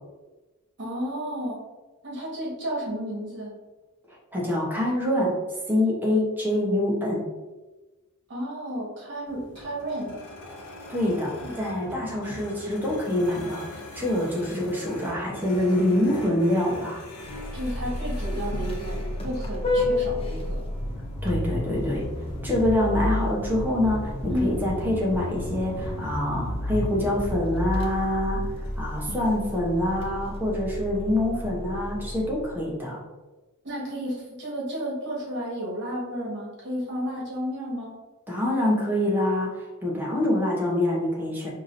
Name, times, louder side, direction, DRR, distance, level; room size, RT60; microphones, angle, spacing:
voice 1, 0.8-1.6 2.0-3.5 8.3-10.2 11.4-11.6 17.5-20.6 24.3-24.5 33.6-37.9, equal, 55° right, -4 dB, 1.4 m, -32 dB
voice 2, 4.3-5.4 5.7-7.3 10.9-17.0 21.2-22.1 22.4-28.5 28.8-33.0 38.3-41.5, left 1 dB, 10° right, -3 dB, 0.8 m, -25 dB
sound 1, 9.3-29.1, equal, 80° left, 0.8 m, -43 dB
Vehicle horn car horn honking, 17.3-32.7, left 1 dB, 25° left, 0.5 m, -31 dB
4.7 x 2.8 x 2.6 m, 1.2 s
head